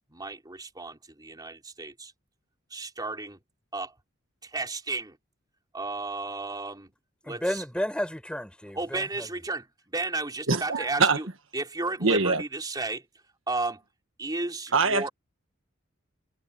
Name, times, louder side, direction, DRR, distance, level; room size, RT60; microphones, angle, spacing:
voice 1, 0.1-2.1 2.7-3.4 3.7-3.9 4.4-5.2 5.7-6.9 7.2-7.6 8.7-11.3 11.5-13.1 13.5-13.8 14.2-15.1, right 3 dB, 20° right, 3.7 m, -33 dB
voice 2, 7.2-9.3, equal, 5° left, 4.7 m, -32 dB
voice 3, 10.5-11.2 12.0-12.4 14.7-15.1, right 4 dB, 70° right, 1.5 m, -23 dB
head